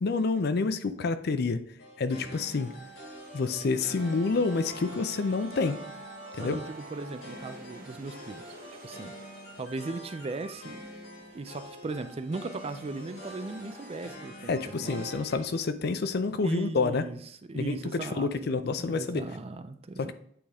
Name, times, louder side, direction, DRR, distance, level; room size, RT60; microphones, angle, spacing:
voice 1, 0.0-1.6 2.0-2.7 3.3-5.8 6.3-6.6 14.5-17.1 17.5-19.3 20.0-20.1, left 4 dB, 55° left, 11 dB, 0.5 m, -28 dB
Harpsichord Szolo, 1.8-15.6, equal, 80° left, 1.9 m, -46 dB
sound 1, 2.5-14.1, right 2 dB, 50° right, 1.2 m, -54 dB
Wind instrument woodwind instrument, 3.9-7.6, right 3 dB, 75° right, 1.9 m, -47 dB
voice 2, 6.4-8.6 8.8-10.8 11.3-15.0 16.4-17.2 17.5-20.1, right 3 dB, 30° right, 10 dB, 0.4 m, -38 dB
8.7 x 3.6 x 3.4 m, 0.66 s
head